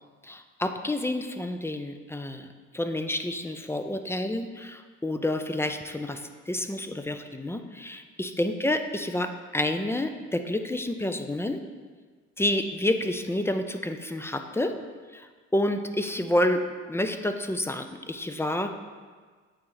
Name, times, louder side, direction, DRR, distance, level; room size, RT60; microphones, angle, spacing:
voice 1, 0.2-2.5 2.7-6.2 6.5-11.6 12.4-14.8 15.1-15.3 15.5-16.6 16.9-18.7, left 1 dB, 10° left, 7 dB, 0.3 m, -29 dB
8.6 x 3.2 x 3.9 m, 1.5 s
cardioid pair, 90°, 30 cm